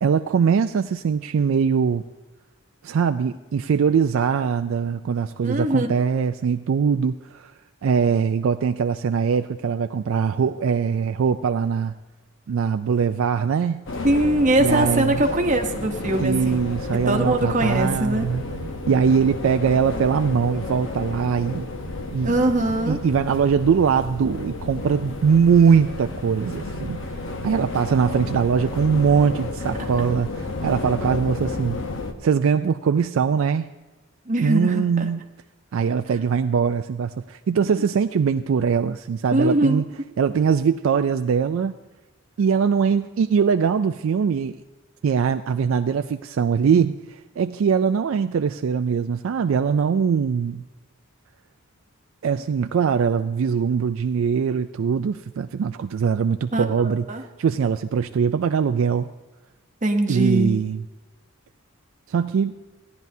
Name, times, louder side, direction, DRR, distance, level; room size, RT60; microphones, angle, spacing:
voice 1, 0.0-2.0 2.8-7.5 7.8-11.9 12.5-13.8 14.6-15.2 16.2-18.4 18.9-21.7 22.1-22.3 22.9-27.0 27.4-31.8 32.2-33.7 34.4-35.2 35.7-39.8 40.2-41.7 42.4-44.6 45.0-47.0 47.4-50.6 52.2-57.1 57.4-59.1 60.1-60.8 62.1-62.5, right 6 dB, 65° right, 9 dB, 0.3 m, -21 dB
voice 2, 5.4-5.9 14.0-16.6 17.1-18.3 22.2-23.0 34.3-35.1 39.3-39.8 56.5-57.2 59.8-60.5, right 1 dB, 35° right, 3 dB, 0.9 m, -22 dB
sound 1, 13.9-32.1, left 2 dB, 60° left, 0.9 m, -31 dB
16.5 x 10.5 x 2.7 m, 1.1 s
head